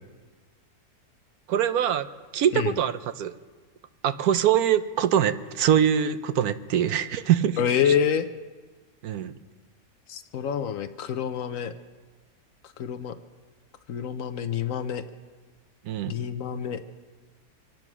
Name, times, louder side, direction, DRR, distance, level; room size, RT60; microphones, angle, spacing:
voice 1, 1.5-2.1 2.3-3.3 4.0-7.6 9.0-9.3 15.8-16.1, right 9 dB, 80° right, 12 dB, 1.2 m, -23 dB
voice 2, 7.6-8.3 10.1-11.7 12.8-13.1 13.9-15.0 16.1-16.8, left 8 dB, 65° left, 10 dB, 1.0 m, -27 dB
25.0 x 9.1 x 6.0 m, 1.4 s
omnidirectional pair, 1.6 m